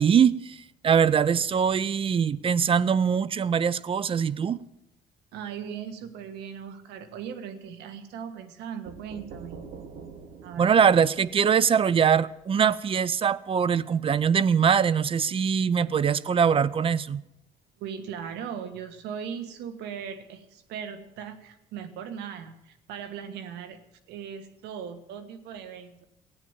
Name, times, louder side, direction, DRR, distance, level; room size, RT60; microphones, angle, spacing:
voice 1, 0.0-4.6 10.6-17.2, right 7 dB, 30° right, 0.5 m, -22 dB
voice 2, 5.3-9.6 10.4-10.7 17.8-23.8 24.1-26.1, right 7 dB, 85° right, 1.5 m, -38 dB
sound 1, 8.9-12.6, right 5 dB, 60° right, 1.9 m, -46 dB
15.0 x 9.4 x 7.2 m
cardioid pair, 110°, 17 cm